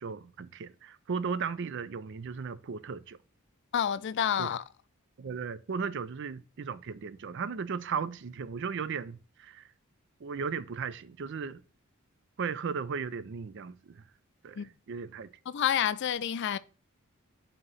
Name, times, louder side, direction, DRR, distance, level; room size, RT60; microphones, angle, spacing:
voice 1, 0.0-3.2 4.4-4.5 5.2-9.7 10.2-11.6 12.4-14.0 14.4-15.3, right 5 dB, 55° right, 0.4 m, -36 dB
voice 2, 3.7-4.6 14.6-14.7 15.5-16.6, left 9 dB, 55° left, 0.4 m, -29 dB
8.0 x 2.9 x 5.4 m
head